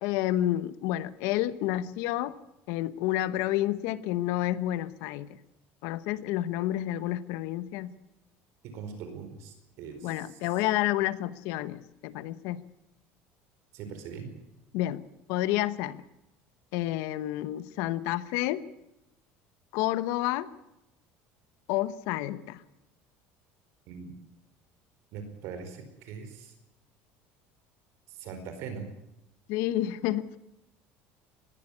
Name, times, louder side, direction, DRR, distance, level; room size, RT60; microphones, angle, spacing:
voice 1, 0.0-2.4 2.7-5.3 5.8-7.9 10.0-12.6 14.7-16.0 16.7-18.6 19.7-20.5 21.7-22.6 29.5-30.4, left 14 dB, 75° left, 15 dB, 1.1 m, -30 dB
voice 2, 8.7-10.2 13.7-14.3 23.9-24.2 25.1-26.5 28.1-28.9, right 6 dB, 65° right, 8 dB, 4.7 m, -41 dB
21.0 x 15.5 x 9.8 m, 0.89 s
cardioid pair, 135°, 5 cm